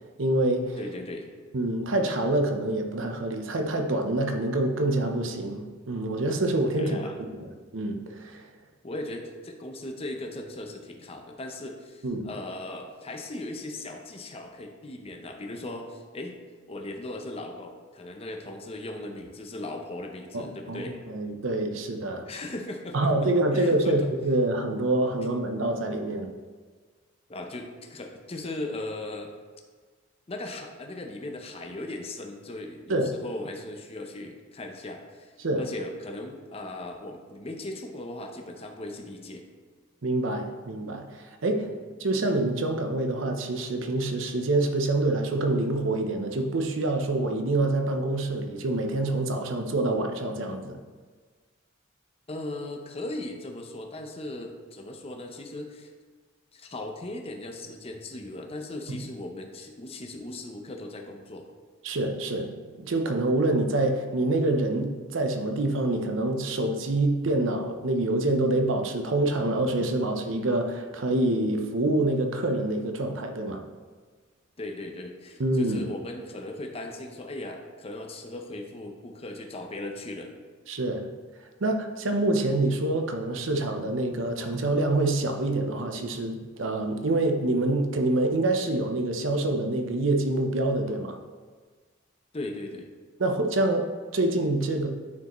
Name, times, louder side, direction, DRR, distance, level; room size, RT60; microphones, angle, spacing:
voice 1, 0.2-0.8 1.5-7.0 7.4-8.4 12.0-12.3 20.3-22.3 22.9-26.3 32.9-33.1 35.4-35.6 40.0-41.7 42.0-50.8 58.9-59.0 61.8-62.5 62.8-73.6 75.4-75.9 80.7-81.1 81.6-91.2 93.2-94.9, right 2 dB, 75° right, 5 dB, 0.7 m, -26 dB
voice 2, 0.8-1.3 6.8-7.2 8.8-16.4 16.7-21.0 22.3-24.1 27.3-29.3 30.3-39.4 41.6-41.8 52.3-55.9 56.5-61.5 74.6-80.3 92.3-92.9, left 2 dB, 30° left, 3 dB, 0.7 m, -38 dB
9.5 x 4.7 x 3.0 m, 1.4 s
head